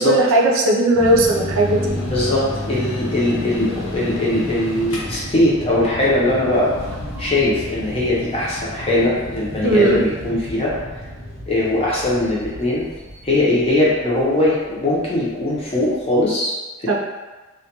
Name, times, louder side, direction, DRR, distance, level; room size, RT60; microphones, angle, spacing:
voice 1, 0.0-2.0 7.2-7.3 9.6-10.0 16.9-17.0, right 2 dB, 80° right, -1 dB, 0.4 m, -17 dB
sound 1, 0.9-16.3, equal, 80° left, 0.6 m, -31 dB
voice 2, 2.0-6.7 7.2-10.7 11.5-12.8 13.2-16.6 16.8-16.9, left 1 dB, 30° left, -6 dB, 0.6 m, -20 dB
2.2 x 2.2 x 2.8 m, 1.2 s
head